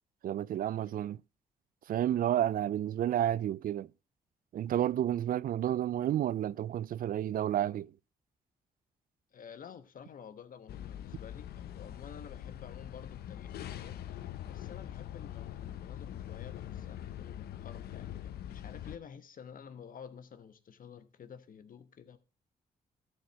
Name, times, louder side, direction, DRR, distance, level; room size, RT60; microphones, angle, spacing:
voice 1, 0.2-1.2 1.9-3.9 4.5-7.9, right 11 dB, 60° right, 0.4 m, -31 dB
voice 2, 9.3-22.2, left 7 dB, 60° left, 1.2 m, -51 dB
sound 1, 10.7-19.0, left 11 dB, 80° left, 0.7 m, -43 dB
13.0 x 4.5 x 6.3 m
supercardioid pair, 60°, 16 cm